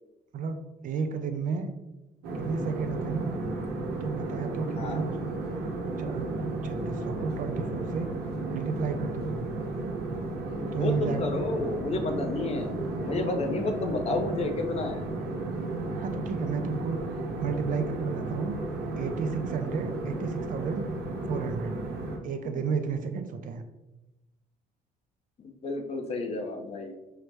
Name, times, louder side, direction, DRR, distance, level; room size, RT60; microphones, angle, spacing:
voice 1, 0.3-1.7 2.3-3.4 4.0-5.4 6.0-6.3 6.6-8.1 8.5-9.3 10.7-11.3 15.9-17.0 17.4-18.6 19.0-20.9 21.3-21.8 22.2-23.6, right 5 dB, 50° right, 8 dB, 0.5 m, -32 dB
sound 1, 2.2-22.2, right 2 dB, 80° right, 0.8 m, -33 dB
voice 2, 10.6-15.0 20.1-20.3 22.4-22.6 25.4-26.9, left 3 dB, 40° left, 5 dB, 0.6 m, -31 dB
5.6 x 2.0 x 3.2 m, 1.0 s
cardioid pair, 110°, 17 cm